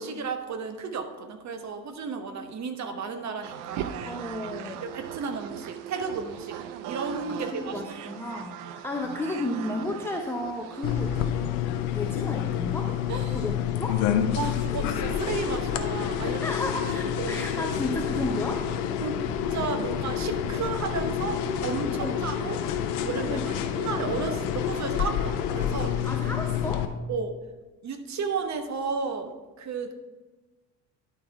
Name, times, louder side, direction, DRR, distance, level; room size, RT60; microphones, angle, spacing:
voice 1, 0.0-4.1 4.8-6.6 6.8-7.8 8.6-8.8 13.1-13.5 14.3-16.4 17.0-17.7 19.0-19.2 19.5-22.6 23.0-26.0 27.1-27.3 27.8-29.9, right 5 dB, 35° right, 7 dB, 1.0 m, -33 dB
sound 1, 3.4-11.3, right 10 dB, 55° right, 0.6 m, -39 dB
voice 2, 4.0-4.8 7.3-11.7 11.9-12.9 13.3-13.9 16.4-18.7 22.0-22.1 23.2-23.5 26.0-26.9, left 2 dB, 5° left, 1 dB, 0.6 m, -33 dB
sound 2, 10.8-26.9, left 9 dB, 65° left, 0.8 m, -28 dB
11.0 x 4.2 x 4.5 m, 1.2 s
figure-of-eight pair, 60°, 49 cm